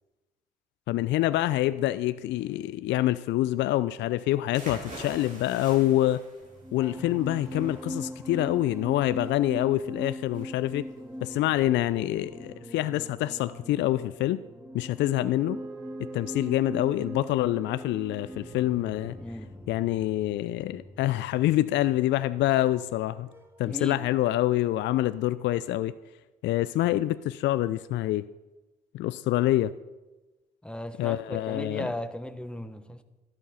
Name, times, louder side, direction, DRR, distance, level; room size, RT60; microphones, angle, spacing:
voice 1, 0.9-6.2 6.7-10.9 11.2-14.4 14.7-15.6 16.1-19.2 19.7-23.3 23.6-25.9 26.4-28.3 28.9-29.7 31.0-31.9, left 14 dB, 65° left, 0.5 m, -26 dB
sound 1, 4.5-12.2, right 1 dB, 40° right, 5.4 m, -46 dB
sound 2, 6.4-23.1 23.3-23.6, equal, 10° right, 2.0 m, -41 dB
Wind instrument woodwind instrument, 15.0-19.6, right 6 dB, 70° right, 2.1 m, -47 dB
voice 2, 19.2-19.5 23.7-24.0 30.6-33.0, left 1 dB, 5° left, 1.2 m, -36 dB
12.0 x 11.0 x 5.7 m
hypercardioid pair, 50°, 20 cm